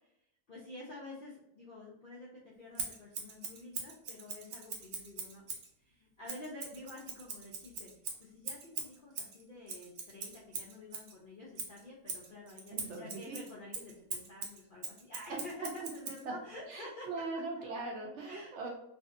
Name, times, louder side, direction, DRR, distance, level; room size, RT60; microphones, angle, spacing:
voice 1, 0.5-2.3 2.6-5.4 6.2-7.9 8.2-17.1 18.3-18.7, left 2 dB, 60° left, -5 dB, 0.5 m, -49 dB
Scissors, 2.8-5.7 6.3-11.1 11.6-16.2, right 5 dB, 80° right, 1.1 m, -42 dB
voice 2, 12.7-13.4 15.3-15.7 16.3-16.4 16.7-18.7, right 3 dB, 65° right, -1 dB, 0.8 m, -40 dB
2.6 x 2.5 x 2.4 m, 0.79 s
omnidirectional pair, 1.5 m